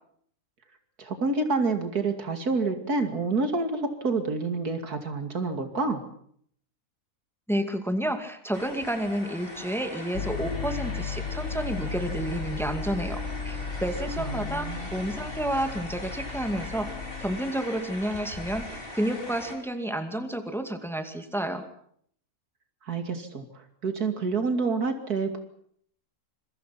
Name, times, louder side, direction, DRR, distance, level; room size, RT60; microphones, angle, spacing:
voice 1, 1.0-6.0 14.2-14.9 22.9-23.5 23.8-25.4, right 3 dB, 85° right, 7 dB, 3.1 m, -28 dB
voice 2, 7.5-16.9 17.2-21.6, right 1 dB, ahead, 7 dB, 2.3 m, -30 dB
sound 1, 8.5-19.6, left 1 dB, 35° left, 4.3 m, -41 dB
sound 2, 10.1-17.4, left 5 dB, 50° left, 1.5 m, -35 dB
26.5 x 23.5 x 6.0 m, 0.64 s
omnidirectional pair, 1.6 m